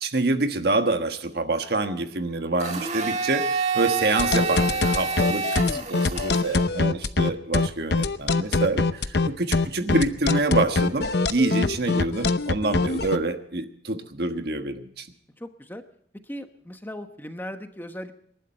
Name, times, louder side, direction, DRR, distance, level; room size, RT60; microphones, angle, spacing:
voice 1, 0.0-5.6 5.9-15.1, right 2 dB, 60° right, 7 dB, 1.4 m, -26 dB
Domestic sounds home sounds, 2.6-6.6, right 5 dB, 40° right, 1.8 m, -28 dB
sound 1, 4.2-13.2, left 3 dB, 65° left, 0.8 m, -23 dB
voice 2, 5.6-5.9 15.4-15.8 16.2-18.1, equal, 10° left, 7 dB, 1.0 m, -37 dB
28.0 x 11.5 x 4.3 m, 0.65 s
head